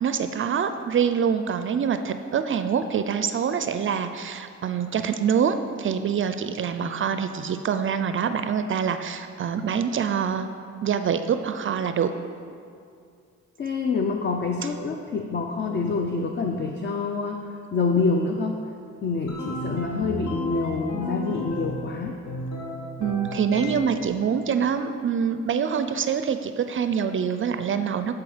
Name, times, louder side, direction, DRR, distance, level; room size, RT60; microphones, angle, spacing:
voice 1, 0.0-10.5 10.8-12.1 23.0-28.2, right 7 dB, 45° right, 9 dB, 0.4 m, -25 dB
voice 2, 13.6-18.6 19.0-22.1, left 4 dB, 35° left, 3 dB, 0.6 m, -26 dB
sound 1, 19.3-21.9 22.3-24.1, equal, 70° left, 1.9 m, -33 dB
12.0 x 4.6 x 5.0 m, 2.4 s
cardioid pair, 90°, 30 cm